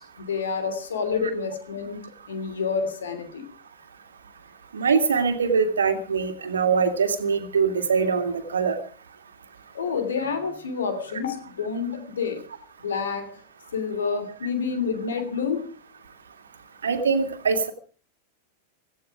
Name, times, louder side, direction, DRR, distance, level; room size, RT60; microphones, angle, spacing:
voice 1, 0.2-3.5 9.7-12.4 12.8-13.4 13.7-15.7, left 5 dB, 65° left, 10 dB, 3.1 m, -28 dB
voice 2, 4.7-8.8 16.8-17.7, right 5 dB, 70° right, 7 dB, 2.2 m, -23 dB
17.5 x 15.0 x 5.0 m, 0.41 s
figure-of-eight pair, 90°, 0 cm